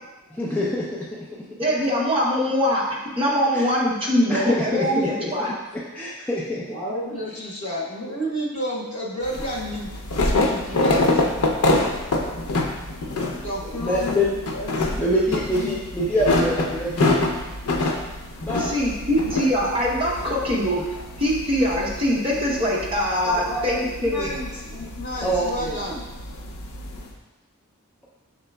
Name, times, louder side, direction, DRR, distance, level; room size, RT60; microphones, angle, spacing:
voice 1, 0.3-1.1 3.5-3.6 4.3-5.3 5.9-6.6 13.6-14.3 15.0-17.3 18.4-18.7 25.2-25.8, equal, 5° left, -6 dB, 0.4 m, -25 dB
voice 2, 1.6-5.5 18.6-20.8 21.2-24.3, equal, 25° right, -4 dB, 0.7 m, -23 dB
voice 3, 6.7-9.9 10.2-11.1 13.1-14.2 14.5-15.0 15.5-15.8 19.2-19.3 23.2-26.0, equal, 70° left, -4 dB, 1.1 m, -31 dB
sound 1, 9.2-27.1, left 2 dB, 90° left, 0.6 m, -26 dB
5.7 x 3.9 x 2.2 m, 1.1 s
head